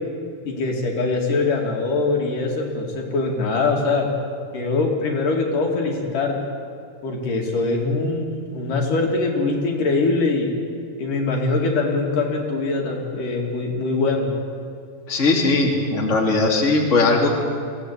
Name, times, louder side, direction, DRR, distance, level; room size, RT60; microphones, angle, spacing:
voice 1, 0.5-4.1 4.5-6.4 7.0-10.5 11.0-14.3, left 3 dB, 70° left, 0 dB, 4.0 m, -22 dB
voice 2, 15.1-17.3, left 3 dB, 20° left, -1 dB, 2.9 m, -19 dB
23.5 x 16.5 x 8.8 m, 2.3 s
omnidirectional pair, 3.9 m